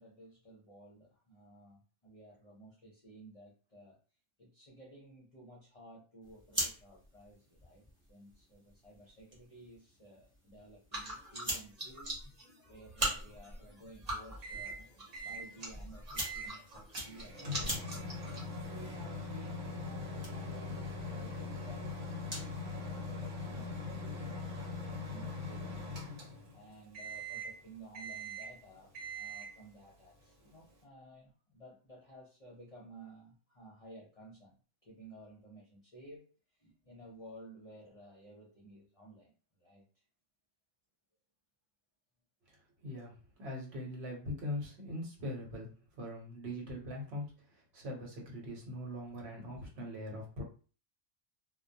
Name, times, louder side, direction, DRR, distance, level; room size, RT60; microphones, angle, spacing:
voice 1, 0.0-4.0 4.4-12.2 12.7-14.9 15.2-18.0 18.6-26.0 26.3-34.5 34.8-36.3 36.6-39.3 39.6-39.8, right 1 dB, 40° left, -5 dB, 0.6 m, -55 dB
sound 1, 6.2-22.6, equal, 15° right, 0.5 m, -46 dB
sound 2, 10.9-18.9, right 1 dB, 35° right, 0.9 m, -42 dB
Microwave oven, 14.4-14.8 15.1-15.5 16.2-16.5 16.9-26.6 26.9-27.6 27.9-28.6 28.9-29.6, left 2 dB, 85° right, 1.1 m, -41 dB
voice 2, 42.8-45.7 46.0-47.2 47.7-50.4, left 1 dB, 65° right, -1 dB, 1.1 m, -41 dB
2.2 x 2.1 x 2.6 m, 0.37 s
omnidirectional pair, 1.3 m